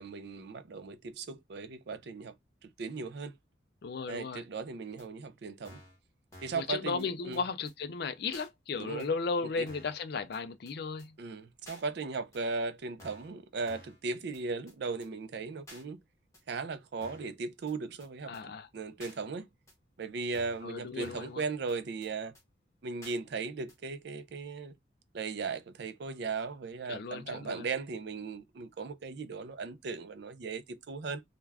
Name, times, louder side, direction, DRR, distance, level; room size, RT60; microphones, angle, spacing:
voice 1, 0.0-2.3 2.6-3.3 4.1-5.8 6.4-7.4 8.8-9.1 9.6-9.7 11.2-16.0 16.5-19.5 20.0-22.3 22.8-24.7 25.1-31.2, right 4 dB, 55° right, 0.4 m, -37 dB
voice 2, 3.8-4.4 6.5-11.1 18.3-18.7 20.6-21.4 26.9-27.7, left 4 dB, 50° left, 0.4 m, -35 dB
sound 1, 5.0-5.1 5.6-6.0 6.3-6.6 7.0-7.1 7.3-7.4 7.7-7.8 8.3-8.5 9.0-9.1 9.7-10.0 10.3-10.4 10.7-10.8 11.0-11.1 11.6-11.8 12.3-12.4 13.0-13.3 13.7-14.0 14.3-14.4 14.7-14.8 15.0-15.1 15.7-15.8 16.3-16.4 17.0-17.3 17.7-17.8 18.0-18.1 18.3-18.4 19.0-19.2 19.7-19.8 20.3-20.7 21.0-21.3 21.7-21.8 22.0-22.1 22.3-22.4 23.0-23.2 23.7-23.8, left 1 dB, 15° left, 0.8 m, -52 dB
2.4 x 2.2 x 3.2 m
head